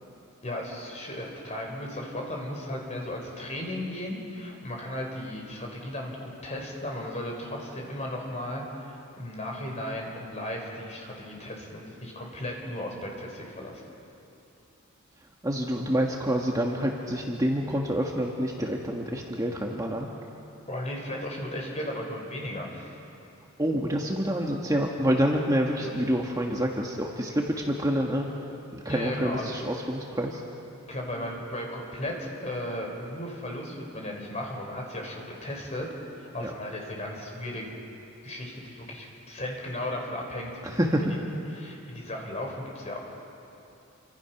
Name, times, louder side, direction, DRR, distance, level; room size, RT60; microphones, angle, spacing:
voice 1, 0.4-13.8 20.7-22.9 25.8-25.9 28.9-29.5 30.9-35.9 36.1-37.7 38.2-40.8 41.5-43.0, left 1 dB, 30° left, 0 dB, 4.4 m, -35 dB
voice 2, 15.4-20.1 23.6-28.3 28.7-30.4 36.4-36.5 40.6-41.1, equal, 15° right, 0 dB, 1.5 m, -27 dB
28.5 x 25.0 x 5.9 m, 2.8 s
head